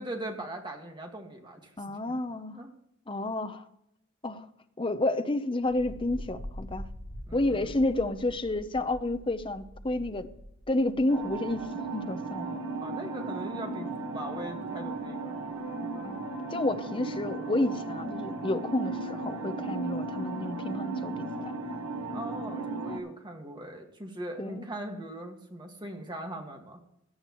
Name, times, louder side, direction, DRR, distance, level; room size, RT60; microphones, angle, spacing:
voice 1, 0.0-1.7 2.1-2.2 2.5-2.7 7.3-7.8 12.8-16.1 22.1-26.8, right 1 dB, 20° right, 1.9 m, -40 dB
voice 2, 1.8-2.6 3.1-3.6 4.2-4.5 4.8-6.9 7.3-10.3 10.7-12.6 16.0-21.5 24.4-24.6, left 2 dB, 25° left, 0.7 m, -30 dB
sound 1, 5.6-11.7, equal, 60° left, 1.8 m, -44 dB
sound 2, 11.1-23.0, right 3 dB, 80° right, 1.5 m, -35 dB
17.0 x 11.0 x 3.1 m
head